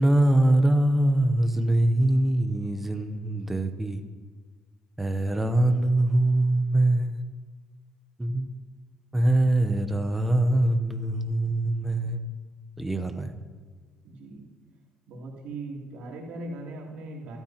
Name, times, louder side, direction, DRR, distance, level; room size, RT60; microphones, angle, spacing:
voice 1, 0.0-4.0 5.0-7.2 8.2-8.5 9.1-12.2 12.8-13.3, right 1 dB, 5° right, 7 dB, 0.8 m, -23 dB
voice 2, 14.0-14.5 15.1-17.4, right 2 dB, 65° right, -2 dB, 3.0 m, -39 dB
24.5 x 12.5 x 2.9 m, 1.5 s
cardioid pair, 175°, 2 cm